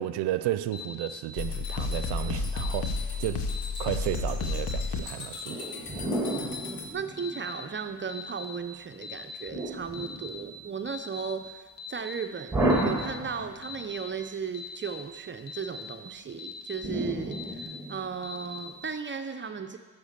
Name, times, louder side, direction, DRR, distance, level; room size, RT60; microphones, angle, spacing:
voice 1, 0.0-2.9 3.2-3.4 3.8-5.7, right 13 dB, 85° right, 13 dB, 0.5 m, -32 dB
Alarm, 0.7-1.1 1.6-2.0 2.6-2.9 3.5-3.8 4.4-4.8 5.3-5.7 6.3-6.6 7.2-7.5 8.1-8.5 9.0-9.4 9.9-10.3 10.9-11.2 11.8-12.1 12.7-13.1 13.6-14.0 14.5-14.9 15.5-15.8 16.4-16.8 17.3-17.7 18.2-18.6, left 5 dB, 80° left, 1.7 m, -41 dB
sound 1, 1.4-6.9, left 4 dB, 65° left, 1.2 m, -32 dB
sound 2, 5.5-7.8 9.5-10.7 12.5-13.8 16.8-18.3, right 1 dB, 5° right, 2.0 m, -31 dB
voice 2, 6.6-12.6 12.8-19.8, right 6 dB, 30° right, 7 dB, 0.6 m, -36 dB
8.5 x 6.6 x 6.6 m, 1.4 s
cardioid pair, 85°, 39 cm